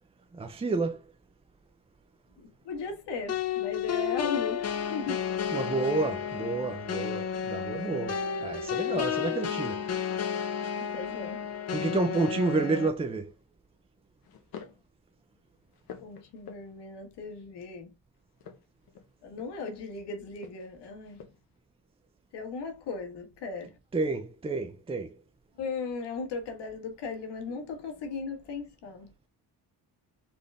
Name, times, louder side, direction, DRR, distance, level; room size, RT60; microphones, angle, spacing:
voice 1, 0.3-1.0 5.5-9.8 11.7-13.3 23.9-25.2, right 3 dB, 15° right, 0.4 m, -30 dB
voice 2, 2.4-4.6 4.9-5.2 8.9-9.4 10.9-11.4 16.0-17.9 19.2-21.2 22.3-23.7 25.6-29.1, left 4 dB, 90° left, 1.5 m, -37 dB
sound 1, 3.3-12.9, left 8 dB, 40° left, 0.7 m, -32 dB
sound 2, 13.0-13.4 14.2-14.9 15.3-17.0 18.3-19.7 20.4-21.6, left 7 dB, 60° left, 1.0 m, -49 dB
4.3 x 3.3 x 3.4 m
cardioid pair, 125°, 40 cm